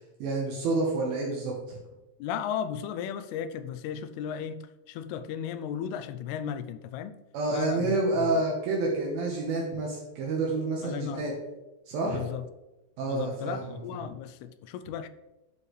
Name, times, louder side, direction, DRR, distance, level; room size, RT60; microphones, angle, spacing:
voice 1, 0.2-1.8 7.3-11.3 11.9-12.2 13.0-14.0, right 2 dB, 75° right, -2 dB, 2.8 m, -29 dB
voice 2, 2.2-7.2 7.5-8.4 10.8-11.2 12.0-12.5 13.1-15.1, left 8 dB, 85° left, 12 dB, 2.5 m, -35 dB
12.0 x 4.8 x 3.3 m, 1.0 s
omnidirectional pair, 4.6 m